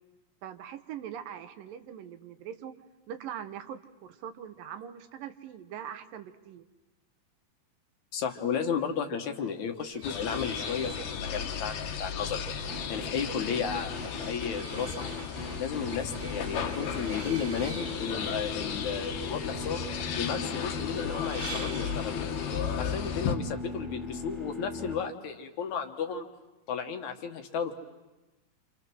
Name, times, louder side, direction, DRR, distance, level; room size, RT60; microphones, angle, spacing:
voice 1, 0.4-2.8 3.1-6.7, right 9 dB, 80° right, 9 dB, 2.8 m, -42 dB
voice 2, 8.1-14.9 15.6-19.8 20.1-22.3 22.8-26.3 26.7-27.7, left 6 dB, 65° left, 4 dB, 2.6 m, -34 dB
sound 1, 9.7-24.7, right 6 dB, 55° right, 1.6 m, -48 dB
sound 2, 10.0-23.4, left 7 dB, 85° left, 3.0 m, -35 dB
sound 3, 12.7-24.9, left 3 dB, ahead, 2.0 m, -39 dB
29.0 x 27.0 x 6.3 m, 1.1 s
omnidirectional pair, 3.9 m